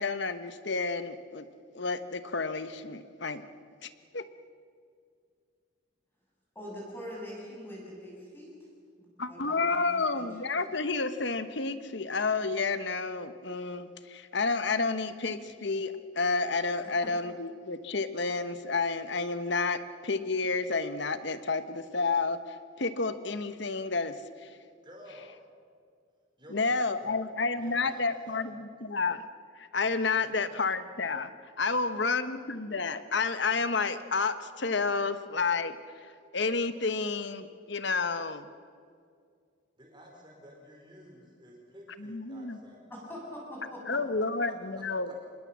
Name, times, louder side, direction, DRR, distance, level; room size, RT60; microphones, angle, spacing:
voice 1, 0.0-1.5 1.7-3.4 3.8-4.2 9.2-22.4 22.8-24.2 24.4-24.5 26.5-29.3 29.6-31.3 31.6-35.7 36.3-38.5 42.0-42.6 43.9-45.2, left 4 dB, 55° left, 12 dB, 1.1 m, -30 dB
voice 2, 6.6-8.5 9.0-10.5 17.0-17.1 42.9-44.2, equal, 10° left, -4 dB, 6.8 m, -43 dB
voice 3, 24.8-25.4 26.4-27.2 27.5-28.4 30.2-30.4 31.7-32.0 39.8-42.8 43.9-45.2, equal, 20° right, 0 dB, 5.0 m, -51 dB
25.5 x 21.0 x 7.5 m, 2.2 s
head